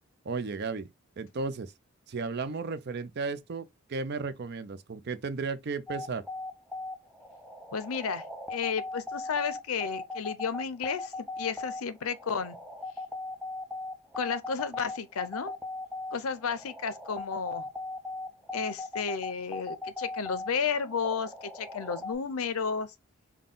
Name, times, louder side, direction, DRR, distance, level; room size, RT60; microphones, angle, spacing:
voice 1, 0.3-0.9 1.2-1.7 2.1-6.2, right 4 dB, 50° right, 0.5 m, -34 dB
sound 1, 5.9-22.1, left 2 dB, ahead, 0.5 m, -38 dB
voice 2, 7.7-8.2 8.5-12.6 14.1-15.5 16.1-17.7 18.5-22.9, left 6 dB, 85° left, 0.6 m, -32 dB
3.8 x 2.2 x 3.7 m
head